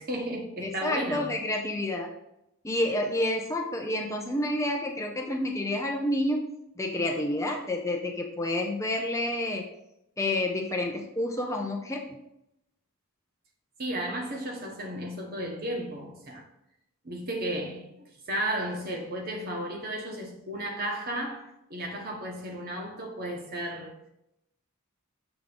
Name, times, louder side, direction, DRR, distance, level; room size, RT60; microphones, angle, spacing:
voice 1, 0.0-1.3 13.8-16.4 17.0-17.9 18.3-24.0, right 1 dB, 45° right, 1.3 m, -34 dB
voice 2, 0.6-2.1 2.6-6.5 6.8-9.7 10.2-12.2, left 1 dB, 15° left, 0.6 m, -29 dB
7.0 x 3.7 x 5.2 m
head